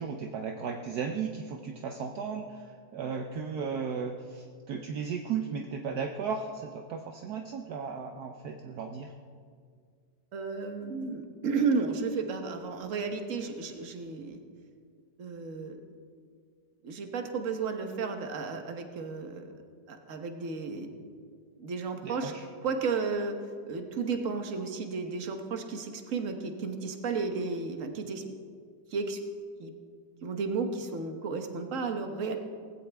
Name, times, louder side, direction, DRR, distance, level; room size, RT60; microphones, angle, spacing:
voice 1, 0.0-2.7 2.9-9.1 22.0-22.4, right 6 dB, 70° right, 4 dB, 1.3 m, -35 dB
voice 2, 10.3-14.4 15.2-15.8 16.8-19.5 19.9-20.9 21.6-22.3 22.6-23.3 23.7-28.2 28.9-29.2 29.6-29.7 30.2-32.4, right 4 dB, 50° right, 5 dB, 1.5 m, -33 dB
18.5 x 16.0 x 3.5 m, 2.1 s
omnidirectional pair, 1.9 m